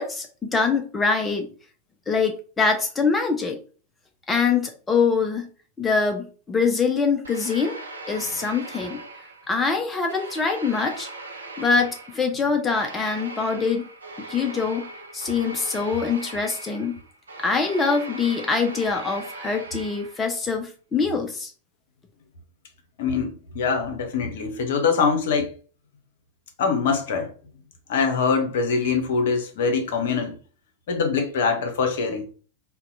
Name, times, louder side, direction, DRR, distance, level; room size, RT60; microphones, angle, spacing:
voice 1, 0.0-1.5 2.1-3.6 4.3-5.5 5.8-7.8 8.1-9.0 9.5-11.1 11.6-13.9 14.3-14.9 15.1-17.0 17.4-21.5, left 5 dB, 15° left, 0.4 m, -24 dB
sound 1, 7.2-9.7 10.1-20.4, right 2 dB, 75° right, 0.5 m, -39 dB
voice 2, 23.0-25.5 26.6-27.3 27.9-30.4 30.9-32.3, left 5 dB, 55° left, 0.7 m, -23 dB
2.7 x 2.1 x 3.8 m
figure-of-eight pair, 90°, 0 cm